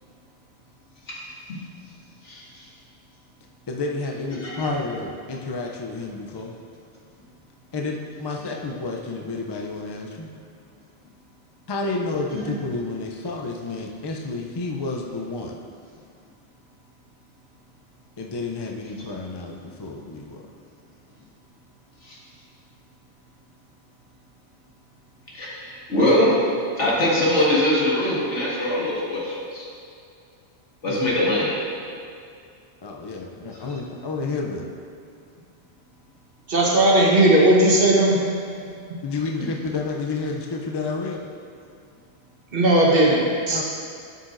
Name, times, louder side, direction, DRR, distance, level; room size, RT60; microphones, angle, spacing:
voice 1, 3.7-6.5 7.7-10.3 11.7-15.6 18.2-20.4 30.8-31.2 32.8-34.7 39.0-41.3 43.5-43.6, left 3 dB, 40° left, 0 dB, 0.3 m, -30 dB
voice 2, 25.3-26.4 26.8-29.7 30.8-31.5 38.7-38.8, left 1 dB, 85° left, -6 dB, 2.0 m, -22 dB
voice 3, 36.5-38.2 42.5-43.6, right 1 dB, 55° right, -3 dB, 1.4 m, -17 dB
11.0 x 6.7 x 2.6 m, 2.4 s
omnidirectional pair, 1.2 m